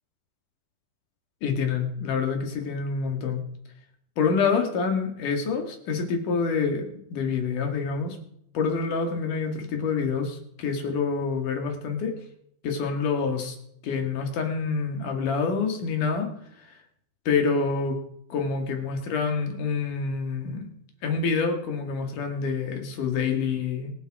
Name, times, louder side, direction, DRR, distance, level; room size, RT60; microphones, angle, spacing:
voice 1, 1.4-3.4 4.2-8.2 8.5-12.1 12.6-13.6 13.8-16.3 17.3-18.0 18.3-20.7 21.0-23.9, left 5 dB, 55° left, 4 dB, 3.4 m, -27 dB
24.5 x 8.3 x 4.9 m, 0.72 s
omnidirectional pair, 4.7 m